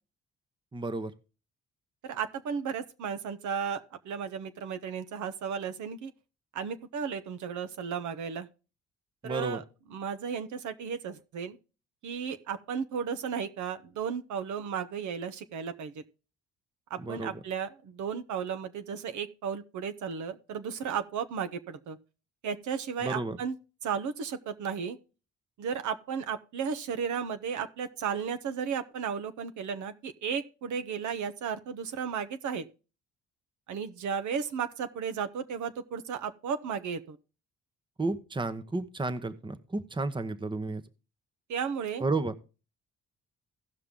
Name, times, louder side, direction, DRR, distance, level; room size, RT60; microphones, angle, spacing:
voice 1, 0.7-1.1 9.2-9.6 17.0-17.4 23.0-23.4 38.0-40.8 42.0-42.4, right 3 dB, 15° right, 0.9 m, -32 dB
voice 2, 2.0-6.1 6.5-8.5 9.2-9.6 9.9-11.6 12.0-16.0 16.9-22.0 22.4-23.5 23.8-25.0 25.6-32.7 33.7-37.2 41.5-42.0, right 7 dB, 75° right, 1.0 m, -34 dB
16.5 x 5.6 x 3.7 m
cardioid pair, 90°, 30 cm